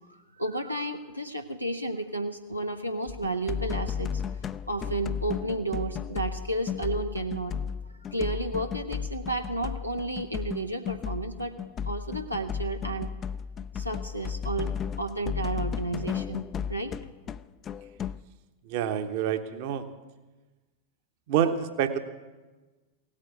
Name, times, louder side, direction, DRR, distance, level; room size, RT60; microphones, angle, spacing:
voice 1, 0.1-7.6 8.1-11.6 11.9-13.1 13.7-17.0, right 2 dB, 90° right, 4 dB, 0.8 m, -32 dB
sound 1, 3.1-18.2, left 7 dB, 25° left, 0.4 m, -34 dB
voice 2, 18.6-19.9 21.3-22.0, right 9 dB, 50° right, 9 dB, 1.1 m, -27 dB
17.0 x 8.8 x 8.3 m, 1.2 s
figure-of-eight pair, 90°, 0 cm